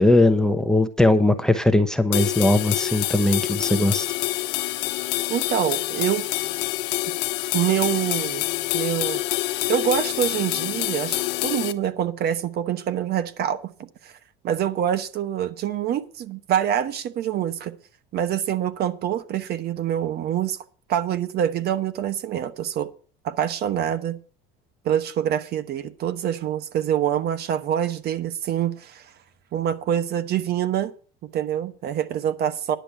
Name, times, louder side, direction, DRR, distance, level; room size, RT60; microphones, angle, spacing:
voice 1, 0.0-4.1, left 2 dB, 5° left, 0.9 m, -19 dB
sound 1, 2.1-11.7, left 17 dB, 85° left, 1.0 m, -26 dB
voice 2, 5.3-6.2 7.5-8.4 8.7-9.2 9.7-13.6 14.0-14.1 14.4-17.7 18.1-20.6 20.9-22.9 23.2-24.2 24.8-29.0 29.5-30.9 31.3-32.8, right 10 dB, 50° right, 1.1 m, -25 dB
10.5 x 6.1 x 8.1 m
cardioid pair, 120°, 21 cm